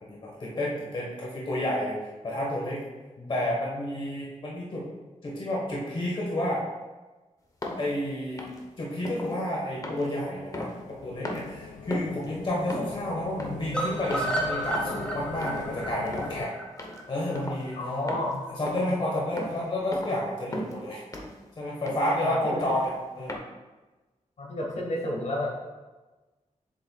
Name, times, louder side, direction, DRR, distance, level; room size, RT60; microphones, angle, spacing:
voice 1, 0.0-2.0 2.2-2.8 3.3-4.9 5.2-6.6 7.8-8.5 8.8-16.5 17.1-17.8 18.6-21.2 21.6-23.4, left 1 dB, 40° left, -4 dB, 1.3 m, -30 dB
voice 2, 3.2-3.5 12.7-12.8 17.8-18.4 18.8-19.0 22.2-22.6 24.4-25.5, left 1 dB, 65° left, -2 dB, 1.8 m, -32 dB
sound 1, 7.6-7.9 8.4-8.7 9.1-9.4 9.8-11.0 11.2-11.5 11.9-12.3 12.7-13.0 13.4-13.7 14.1-14.4 14.7-15.0 15.4-15.7 16.1-16.4 16.8-17.0 17.4-17.7 18.1-18.4 18.7-19.0 19.4-19.6 19.9-20.2 20.5-20.8 21.1-21.4 21.9-22.1 22.6-22.9 23.3-23.4, left 1 dB, 25° left, 0.8 m, -36 dB
sound 2, 10.3-16.4, left 7 dB, 85° left, 0.4 m, -42 dB
sound 3, 13.7-17.8 18.1-18.2 18.5-18.6 18.9-19.0, right 1 dB, 5° left, 1.1 m, -32 dB
7.4 x 7.3 x 2.3 m, 1.2 s
wide cardioid pair, 165°, 13 cm